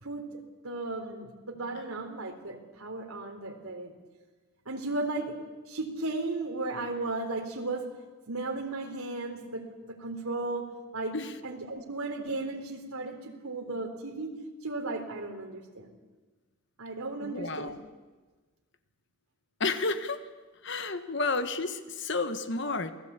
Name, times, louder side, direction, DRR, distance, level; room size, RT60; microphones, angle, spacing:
voice 1, 0.0-3.9 4.7-5.3 5.7-7.9 8.3-11.2 11.4-14.3 14.6-16.0 16.8-17.7, right 2 dB, 80° right, 4 dB, 3.7 m, -35 dB
voice 2, 17.2-17.8 19.6-20.3 20.6-22.9, left 3 dB, 55° left, 10 dB, 1.4 m, -31 dB
27.5 x 19.0 x 8.3 m, 1.3 s
head